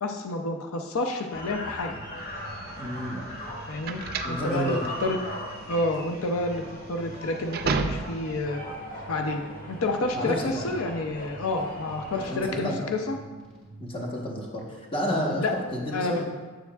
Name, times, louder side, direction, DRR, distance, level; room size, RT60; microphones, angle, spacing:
voice 1, 0.0-2.0 3.7-5.2 5.7-8.6 9.1-9.4 9.7-13.2 15.1-15.6 15.9-16.2, left 2 dB, 85° left, 4 dB, 0.5 m, -29 dB
sound 1, 1.3-12.5, equal, 45° left, 1.3 m, -39 dB
sound 2, 1.8-14.0, right 2 dB, 5° left, 1.8 m, -47 dB
sound 3, 2.5-8.4, right 4 dB, 50° right, 0.4 m, -33 dB
voice 2, 2.8-3.3 4.2-4.9 10.1-10.7 12.1-12.9 13.8-16.2, equal, 25° left, -2 dB, 1.1 m, -31 dB
7.7 x 6.9 x 2.3 m, 1.3 s
head